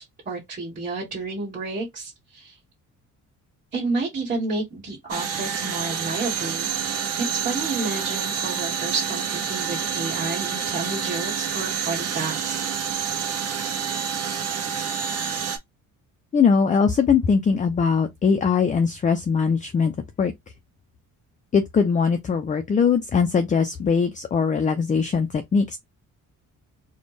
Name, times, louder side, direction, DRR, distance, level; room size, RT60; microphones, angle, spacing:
voice 1, 0.0-2.6 3.7-6.7 7.2-12.6, right 3 dB, 25° right, 1.6 m, -30 dB
sound 1, 5.1-15.6, right 8 dB, 50° right, 1.2 m, -28 dB
voice 2, 16.3-19.9 20.2-20.3 21.5-25.8, left 6 dB, 25° left, 0.4 m, -21 dB
4.2 x 2.2 x 3.2 m
cardioid pair, 145°, 32 cm